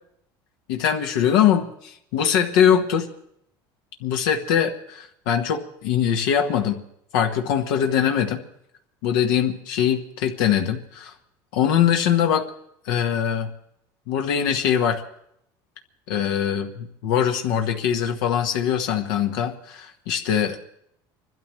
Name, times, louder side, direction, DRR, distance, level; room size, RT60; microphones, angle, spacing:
voice 1, 0.7-3.1 4.0-6.8 7.1-8.4 9.0-11.1 11.5-12.4 12.9-13.5 14.1-15.0 16.1-20.6, left 9 dB, 85° left, 4 dB, 1.2 m, -22 dB
29.5 x 12.5 x 3.2 m, 0.74 s
supercardioid pair, 115°, 11 cm